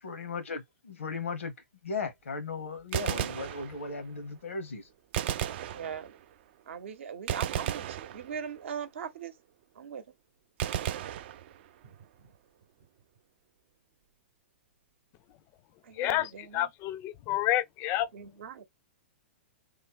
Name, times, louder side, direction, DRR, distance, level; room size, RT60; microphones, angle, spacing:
voice 1, 0.0-1.5 1.8-4.9, left 4 dB, 85° left, 0.9 m, -36 dB
Gunshot gunfire, 2.8-4.1 5.1-6.4 7.3-8.7 10.6-11.9, right 11 dB, 55° right, 0.4 m, -34 dB
voice 2, 5.7-6.2 6.7-9.3 9.7-10.0 11.8-11.9 15.8-16.7 18.1-18.6, right 7 dB, 70° right, 0.8 m, -40 dB
voice 3, 16.0-16.3 16.5-18.1, left 14 dB, 35° left, 0.4 m, -29 dB
3.2 x 2.0 x 3.5 m
hypercardioid pair, 120°, 7 cm